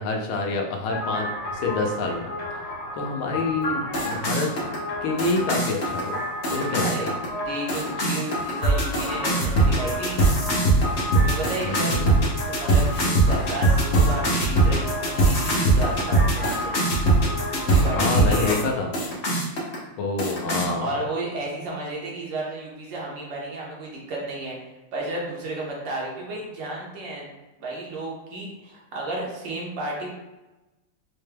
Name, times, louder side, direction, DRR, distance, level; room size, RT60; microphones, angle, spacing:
voice 1, 0.0-2.3 2.9-4.5 5.0-6.2 6.5-7.1 11.6-12.1 17.9-18.9 20.0-20.9, left 3 dB, 85° left, 1 dB, 1.5 m, -27 dB
sound 1, 0.9-18.6 18.9-19.8 20.2-20.7, right 1 dB, 70° left, 0.6 m, -23 dB
voice 2, 6.8-10.2 11.1-12.0 12.5-16.7 17.5-18.6 20.8-24.6 24.9-27.3 27.6-30.1, right 2 dB, 65° right, -3 dB, 1.5 m, -32 dB
4.5 x 2.2 x 3.3 m, 1.1 s
omnidirectional pair, 2.3 m